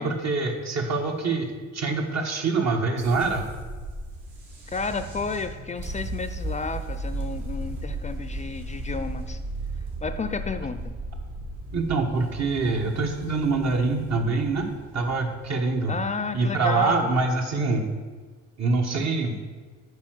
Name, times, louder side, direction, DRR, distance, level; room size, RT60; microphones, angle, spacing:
voice 1, 0.0-3.5 11.7-14.7 14.9-15.9 16.3-17.8 18.6-19.4, right 3 dB, 60° right, 3 dB, 1.4 m, -25 dB
sound 1, 3.0-17.2, right 1 dB, 75° right, 2.5 m, -36 dB
voice 2, 4.7-9.4 10.0-11.0 15.9-17.1, left 4 dB, 25° left, 10 dB, 0.4 m, -32 dB
8.4 x 4.7 x 6.4 m, 1.4 s
cardioid pair, 90°, 30 cm